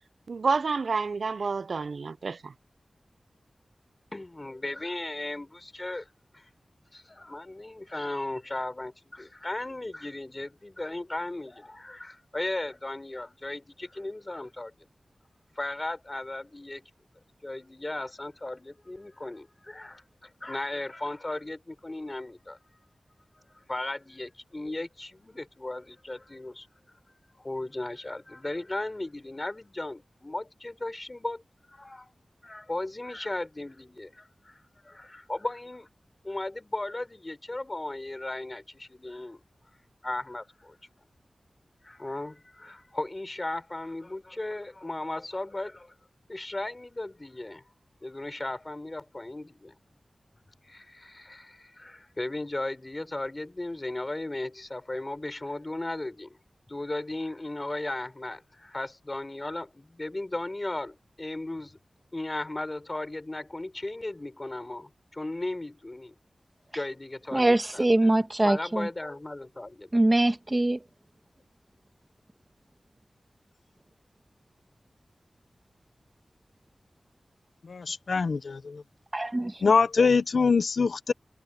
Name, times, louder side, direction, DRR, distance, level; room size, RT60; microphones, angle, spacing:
voice 1, 0.3-2.4, right 4 dB, 80° right, 0.4 m, -28 dB
voice 2, 4.1-6.5 6.9-14.9 15.6-16.9 17.4-22.6 23.3-31.4 31.7-32.1 32.4-35.9 36.2-39.4 40.0-40.8 41.8-45.9 46.3-47.6 48.0-49.8 50.6-56.4 56.7-61.8 62.1-66.1 66.7-70.0, left 2 dB, 30° left, 4.2 m, -36 dB
voice 3, 67.3-68.8 69.9-70.8 79.1-79.5, right 1 dB, 25° right, 1.7 m, -23 dB
voice 4, 77.7-78.8 79.6-81.1, left 4 dB, 85° left, 0.6 m, -23 dB
wide cardioid pair, 95°, 0 cm